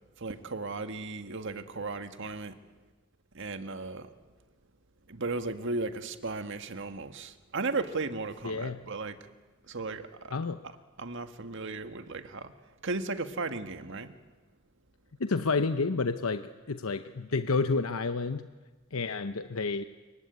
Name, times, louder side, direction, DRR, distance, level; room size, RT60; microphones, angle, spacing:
voice 1, 0.2-2.6 3.3-4.1 5.1-9.2 9.6-10.3 11.0-12.5 12.8-14.1, right 3 dB, 60° right, 8 dB, 1.7 m, -35 dB
voice 2, 8.4-8.8 10.3-10.6 15.2-18.5 18.9-19.8, left 4 dB, 90° left, 10 dB, 0.8 m, -30 dB
26.5 x 23.5 x 9.5 m, 1.3 s
head